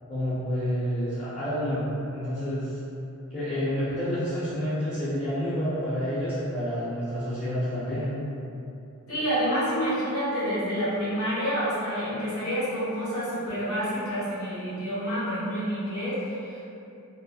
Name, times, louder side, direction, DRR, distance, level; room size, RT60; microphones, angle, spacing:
voice 1, 0.1-2.8 3.3-8.1, equal, 30° left, -13 dB, 0.6 m, -29 dB
voice 2, 9.1-16.9, equal, 80° left, -10 dB, 1.1 m, -28 dB
3.0 x 2.4 x 2.3 m, 2.7 s
head